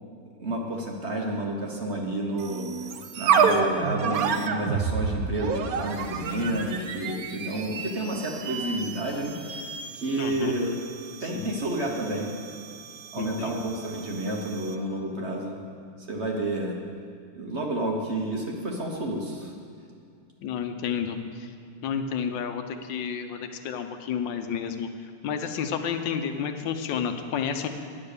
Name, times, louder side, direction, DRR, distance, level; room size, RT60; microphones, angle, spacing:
voice 1, 0.4-2.7 3.1-9.6 9.9-10.7 11.2-12.3 13.1-15.6 16.1-16.7 17.3-19.5, right 1 dB, 45° right, 0 dB, 1.1 m, -30 dB
sound 1, 2.4-14.9, right 5 dB, 65° right, 1.0 m, -30 dB
voice 2, 10.2-10.5 11.3-11.5 13.2-13.7 20.4-21.5 21.8-23.4 23.6-24.9 25.2-27.7, left 7 dB, 85° left, 7 dB, 1.4 m, -30 dB
9.7 x 8.8 x 6.6 m, 2.3 s
omnidirectional pair, 2.0 m